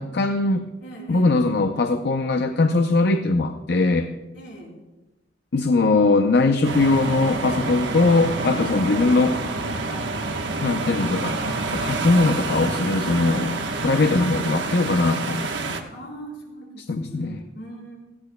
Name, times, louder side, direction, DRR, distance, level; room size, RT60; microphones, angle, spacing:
voice 1, 0.0-0.6 1.1-4.1 5.5-9.4 10.6-11.4 11.7-13.6 13.8-15.5 16.9-17.4, left 3 dB, 60° left, 6 dB, 0.6 m, -20 dB
voice 2, 0.8-1.3 4.3-4.8 8.5-8.9 9.9-10.2 13.0-13.4 15.1-15.3 15.9-18.0, right 1 dB, 80° left, -3 dB, 4.4 m, -41 dB
sound 1, 6.6-15.8, right 3 dB, 70° right, 1.1 m, -28 dB
18.0 x 14.5 x 2.2 m, 1.1 s
head